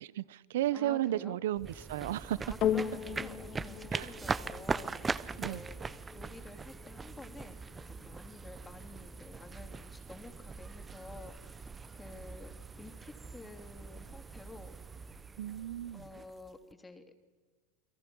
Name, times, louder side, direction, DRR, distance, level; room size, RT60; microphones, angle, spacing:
voice 1, 0.0-2.4 3.9-4.1 5.4-5.6 15.4-16.0, right 13 dB, 75° right, 0.8 m, -34 dB
voice 2, 0.7-1.4 2.4-14.7 15.9-17.0, left 3 dB, 15° left, 3.1 m, -51 dB
sound 1, 1.6-16.7, right 4 dB, 20° right, 0.9 m, -41 dB
sound 2, 2.6-11.2 11.9-12.0, left 10 dB, 50° left, 2.1 m, -40 dB
29.0 x 22.5 x 6.3 m
hypercardioid pair, 100°, 0 cm